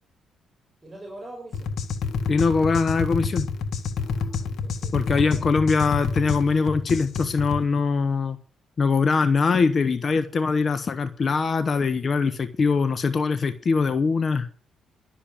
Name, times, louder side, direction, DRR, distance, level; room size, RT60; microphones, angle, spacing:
voice 1, 0.8-1.7 4.0-5.9, right 1 dB, 25° right, 5.6 m, -44 dB
sound 1, 1.5-7.6, left 5 dB, 65° left, 1.5 m, -28 dB
voice 2, 2.3-3.5 4.9-8.4 8.8-14.5, left 4 dB, 40° left, 0.9 m, -22 dB
11.5 x 7.1 x 8.6 m
cardioid pair, 105°, 0 cm